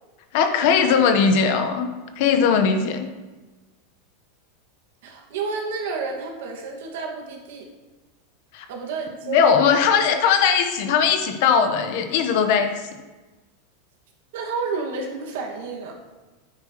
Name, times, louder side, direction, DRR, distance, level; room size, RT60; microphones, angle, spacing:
voice 1, 0.3-1.9 2.2-3.1 8.5-8.6 9.3-12.7, left 6 dB, 60° left, 6 dB, 1.1 m, -19 dB
voice 2, 5.0-7.7 8.7-9.8 14.3-15.9, right 4 dB, 70° right, 0 dB, 2.0 m, -30 dB
9.7 x 8.7 x 3.1 m, 1.2 s
supercardioid pair, 140°, 0 cm